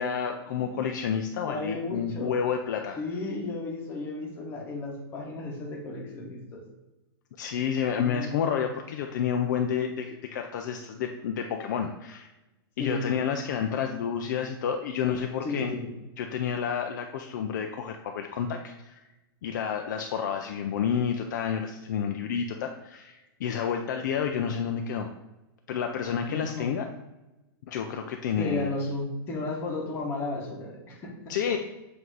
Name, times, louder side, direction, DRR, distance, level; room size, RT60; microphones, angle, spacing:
voice 1, 0.0-3.0 7.4-12.3 12.8-15.7 16.2-19.0 19.4-25.1 25.7-26.8 27.7-28.7 31.3-31.6, left 7 dB, 45° left, 4 dB, 0.4 m, -30 dB
voice 2, 1.5-2.4 3.0-6.6 8.0-8.5 12.8-13.0 15.4-15.9 26.3-26.7 28.4-31.4, left 2 dB, 15° left, -1 dB, 1.0 m, -34 dB
7.8 x 2.7 x 4.7 m, 1.0 s
supercardioid pair, 175°, 13 cm